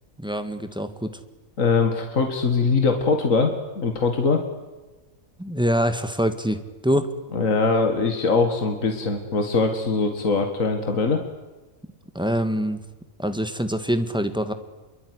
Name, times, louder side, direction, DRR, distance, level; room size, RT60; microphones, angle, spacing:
voice 1, 0.2-1.1 5.4-7.1 12.2-12.8 13.2-14.5, equal, 5° right, 9 dB, 1.8 m, -24 dB
voice 2, 1.6-4.4 7.3-11.2, left 4 dB, 65° left, 5 dB, 2.4 m, -22 dB
26.0 x 23.0 x 9.8 m, 1.2 s
omnidirectional pair, 1.5 m